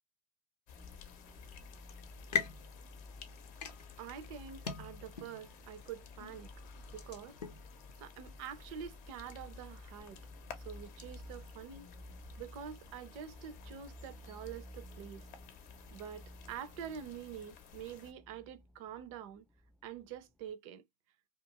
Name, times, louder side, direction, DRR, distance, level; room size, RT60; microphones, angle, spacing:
sound 1, 0.7-18.1, left 8 dB, 40° left, 0.7 m, -56 dB
sound 2, 0.7-20.5, left 1 dB, 5° left, 0.3 m, -54 dB
sound 3, 2.0-7.7, left 6 dB, 90° left, 0.7 m, -42 dB
voice 1, 4.0-6.5 6.9-7.4 8.0-10.2 10.6-11.9 12.4-15.3 15.9-19.5 19.8-20.8, right 8 dB, 55° right, 0.6 m, -46 dB
2.4 x 2.4 x 2.8 m
hypercardioid pair, 100°, 20 cm